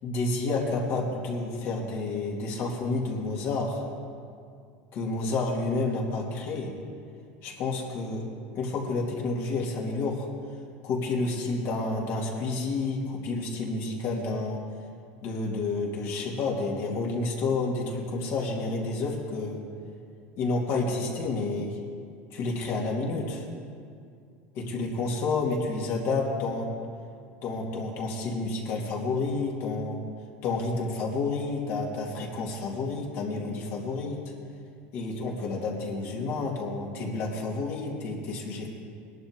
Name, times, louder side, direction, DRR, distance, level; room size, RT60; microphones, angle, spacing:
voice 1, 0.0-3.8 4.9-6.7 7.4-8.2 8.5-10.3 10.8-14.6 15.2-19.6 20.4-21.8 22.3-23.5 24.5-26.7 27.4-30.0 30.4-34.2 34.9-38.7, left 3 dB, 55° left, -1 dB, 2.6 m, -30 dB
20.5 x 11.0 x 3.8 m, 2.3 s
supercardioid pair, 135°, 5 cm